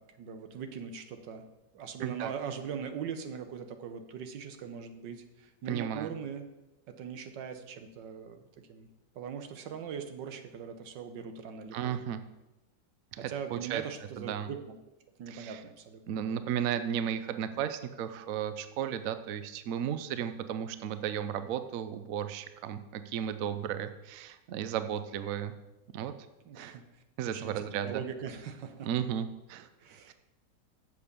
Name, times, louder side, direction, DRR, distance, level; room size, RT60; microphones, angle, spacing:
voice 1, 0.0-1.4 1.7-6.4 6.9-8.4 8.7-8.9 9.1-12.0 13.1-14.6 15.2-16.0 26.5-26.8 27.3-28.9 29.8-30.1, right 7 dB, 80° right, 8 dB, 1.6 m, -41 dB
voice 2, 2.0-2.3 5.7-6.1 11.7-12.2 13.1-13.8 14.2-14.5 15.3-15.6 16.1-25.5 25.9-26.1 26.6-26.8 27.2-28.0 28.8-29.7 30.1-30.2, right 9 dB, 65° right, 10 dB, 0.9 m, -34 dB
7.6 x 6.9 x 6.7 m, 0.98 s
omnidirectional pair, 1.9 m